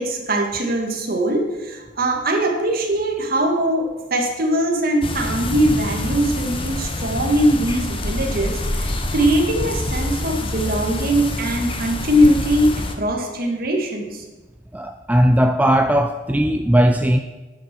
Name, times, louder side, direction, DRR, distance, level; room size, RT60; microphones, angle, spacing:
voice 1, 0.0-14.2, right 1 dB, 50° right, 2 dB, 2.0 m, -21 dB
sound 1, 5.0-12.9, left 1 dB, 30° left, 1.1 m, -26 dB
voice 2, 14.7-17.2, equal, 10° right, 6 dB, 0.4 m, -17 dB
10.0 x 8.5 x 6.2 m, 1.2 s
head